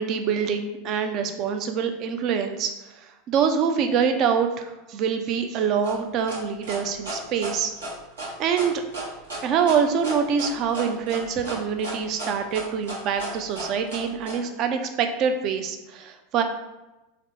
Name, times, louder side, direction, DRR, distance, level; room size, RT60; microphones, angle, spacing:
voice 1, 0.0-7.7 8.4-8.8 9.4-16.4, right 7 dB, 45° right, 6 dB, 0.4 m, -25 dB
sound 1, 5.8-14.4, right 2 dB, 75° right, 1.0 m, -34 dB
4.1 x 2.1 x 2.7 m, 1.0 s
figure-of-eight pair, 85°, 0 cm